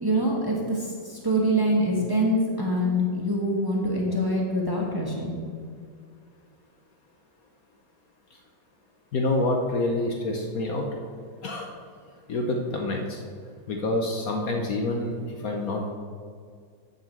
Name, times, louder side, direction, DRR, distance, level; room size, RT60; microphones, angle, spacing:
voice 1, 0.0-5.3, equal, 15° right, -2 dB, 1.3 m, -25 dB
voice 2, 9.1-10.9 11.4-11.7 12.3-13.2 13.7-15.9, left 2 dB, 60° left, 2 dB, 1.2 m, -27 dB
9.3 x 5.5 x 7.2 m, 2.1 s
omnidirectional pair, 1.9 m